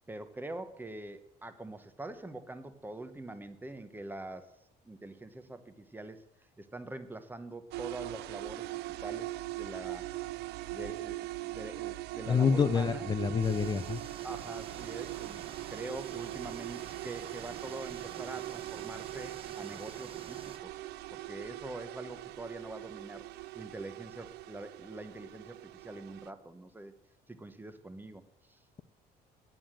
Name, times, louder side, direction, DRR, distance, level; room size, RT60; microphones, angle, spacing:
voice 1, 0.1-4.5 4.8-6.2 6.6-10.1 10.7-13.1 14.2-20.8 21.1-26.9 27.3-28.6, right 2 dB, 10° right, 10 dB, 1.0 m, -44 dB
sound 1, 7.7-26.3, right 18 dB, 75° right, 0.4 m, -41 dB
voice 2, 12.3-14.0, left 6 dB, 25° left, 12 dB, 0.6 m, -27 dB
sound 2, 13.4-20.6, right 5 dB, 35° right, 1.3 m, -50 dB
9.4 x 8.5 x 7.6 m, 0.79 s
cardioid pair, 110°, 17 cm